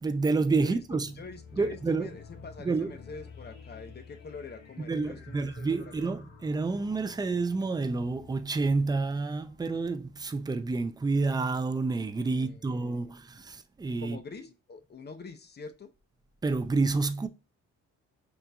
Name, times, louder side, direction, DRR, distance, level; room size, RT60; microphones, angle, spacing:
voice 1, 0.0-1.1 1.6-2.1 2.6-2.9 4.9-14.2 16.4-17.3, right 3 dB, 15° right, 0.5 m, -29 dB
sound 1, 0.7-10.9, left 5 dB, 90° left, 1.4 m, -52 dB
voice 2, 1.1-6.1 12.3-13.1 14.0-15.9, left 4 dB, 35° left, 0.8 m, -45 dB
5.8 x 2.6 x 2.4 m
cardioid pair, 90°, 30 cm